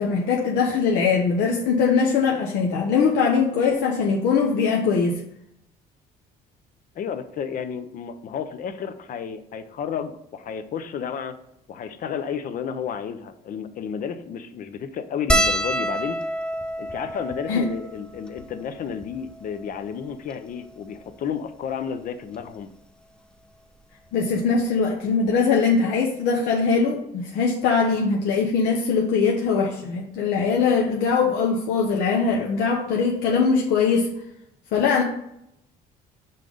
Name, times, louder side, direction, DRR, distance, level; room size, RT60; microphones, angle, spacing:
voice 1, 0.0-5.2 17.5-17.7 24.1-34.1 34.7-35.0, left 5 dB, 80° left, -1 dB, 0.9 m, -21 dB
voice 2, 6.9-11.4 11.7-16.2 16.8-22.7, left 7 dB, 55° left, 10 dB, 0.6 m, -32 dB
sound 1, 15.3-19.9 20.6-20.7 20.9-21.1 22.4-22.6 24.1-24.2 24.4-24.6, equal, 5° left, 0.5 m, -28 dB
5.7 x 3.9 x 5.0 m, 0.78 s
cardioid pair, 110°, 17 cm